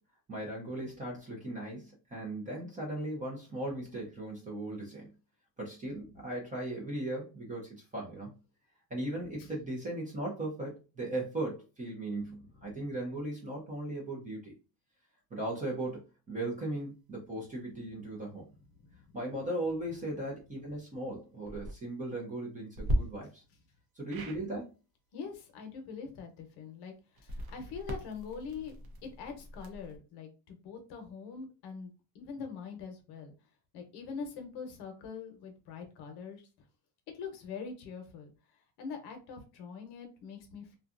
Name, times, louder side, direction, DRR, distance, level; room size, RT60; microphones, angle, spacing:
voice 1, 0.3-5.1 5.6-8.3 8.9-14.5 15.3-18.5 19.1-23.4 24.0-24.7, right 1 dB, 15° right, -3 dB, 0.5 m, -38 dB
sound 1, 21.4-21.7 22.7-23.0 24.1-24.4 27.1-30.0, equal, 50° right, 0.7 m, -36 dB
voice 2, 25.1-28.8 29.0-33.3 33.7-36.4 37.1-38.3 38.8-40.8, left 5 dB, 55° left, 5 dB, 0.8 m, -43 dB
2.6 x 2.3 x 2.4 m, 0.31 s
cardioid pair, 145°, 48 cm